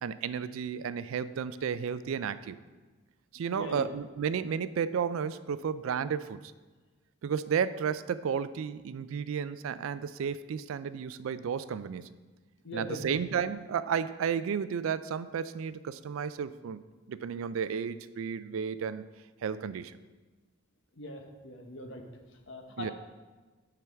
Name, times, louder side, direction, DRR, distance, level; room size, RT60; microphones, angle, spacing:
voice 1, 0.0-2.6 3.3-6.4 7.2-12.1 12.7-16.8 17.1-19.0 19.4-20.0 22.8-22.9, right 7 dB, 70° right, 15 dB, 0.3 m, -32 dB
voice 2, 3.5-3.9 12.6-13.1 21.0-22.0 22.3-22.9, left 1 dB, 60° left, 3 dB, 1.0 m, -41 dB
9.3 x 5.9 x 3.4 m, 1.3 s
head